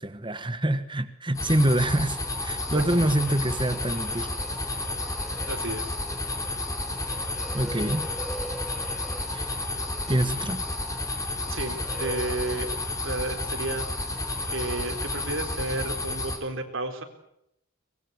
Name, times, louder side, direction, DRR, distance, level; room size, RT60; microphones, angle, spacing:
voice 1, 0.0-4.3 7.5-8.1 9.3-9.6 10.1-10.6, right 1 dB, 20° right, 1.3 m, -26 dB
sound 1, 1.3-16.4, left 2 dB, 15° left, 3.5 m, -31 dB
sound 2, 1.8-16.1, equal, ahead, 1.4 m, -43 dB
voice 2, 2.7-3.1 5.5-6.0 7.1-7.2 11.4-12.7 13.0-13.9 14.5-17.0, right 2 dB, 60° right, 3.9 m, -32 dB
24.0 x 21.0 x 8.1 m
head